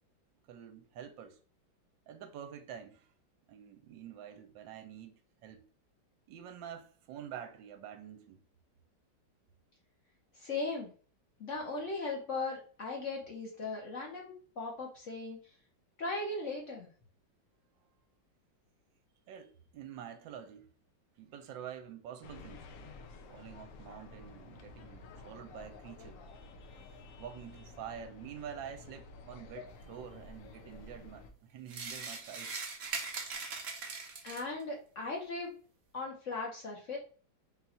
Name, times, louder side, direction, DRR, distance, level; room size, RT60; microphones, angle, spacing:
voice 1, 0.5-1.4 2.1-3.1 3.5-5.6 6.3-8.4 19.3-20.7 21.2-22.7 23.3-26.2 27.2-32.6, right 9 dB, 80° right, 1.3 m, -47 dB
voice 2, 10.4-10.9 11.4-15.4 16.0-16.9 34.2-35.6 35.9-37.0, left 3 dB, 50° left, 1.0 m, -38 dB
sound 1, 22.2-31.3, left 4 dB, 85° left, 0.7 m, -51 dB
sound 2, 31.7-34.6, right 4 dB, 55° right, 0.7 m, -40 dB
4.1 x 2.4 x 4.2 m
omnidirectional pair, 2.1 m